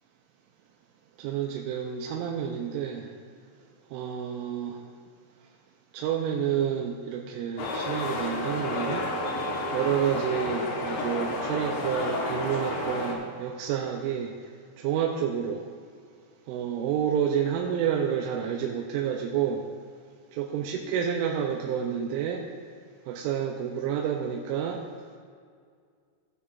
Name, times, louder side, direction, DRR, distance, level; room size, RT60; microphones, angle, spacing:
voice 1, 1.2-3.1 3.9-4.8 5.9-9.1 9.7-14.3 14.8-15.7 16.5-19.6 20.3-22.5 23.1-24.8, right 8 dB, 90° right, 1 dB, 3.1 m, -29 dB
sound 1, 7.6-13.1, left 2 dB, 70° left, 2.7 m, -31 dB
16.5 x 9.5 x 2.5 m, 2.1 s
omnidirectional pair, 5.5 m